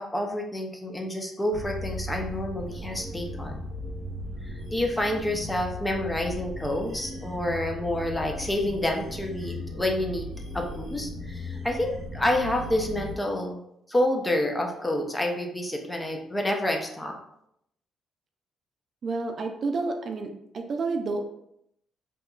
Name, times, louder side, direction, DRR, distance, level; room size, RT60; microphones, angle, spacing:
voice 1, 0.0-3.6 4.7-13.6 13.9-17.2, left 1 dB, 15° left, 2 dB, 0.4 m, -28 dB
sound 1, 1.5-13.2, left 1 dB, 75° right, 0.7 m, -37 dB
voice 2, 19.0-21.2, right 3 dB, 50° right, 5 dB, 0.3 m, -30 dB
2.8 x 2.2 x 2.3 m, 0.77 s
cardioid pair, 90°, 0 cm